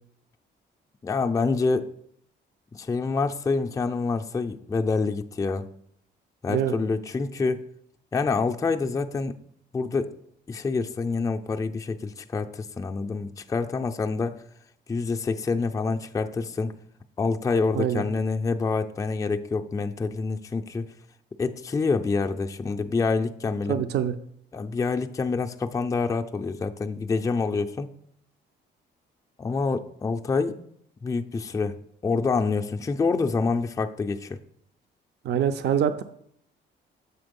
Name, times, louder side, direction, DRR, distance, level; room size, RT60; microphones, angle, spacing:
voice 1, 1.0-1.9 2.7-5.7 6.4-7.6 8.1-9.4 9.7-10.2 10.5-14.4 14.9-16.7 17.2-20.9 21.4-23.8 24.5-27.9 29.4-30.6 31.0-31.8 32.0-34.4, left 4 dB, 15° left, 5 dB, 0.4 m, -27 dB
voice 2, 23.7-24.1 35.2-36.0, right 9 dB, 60° right, 10 dB, 0.4 m, -24 dB
7.0 x 3.6 x 5.2 m, 0.69 s
cardioid pair, 90°, 20 cm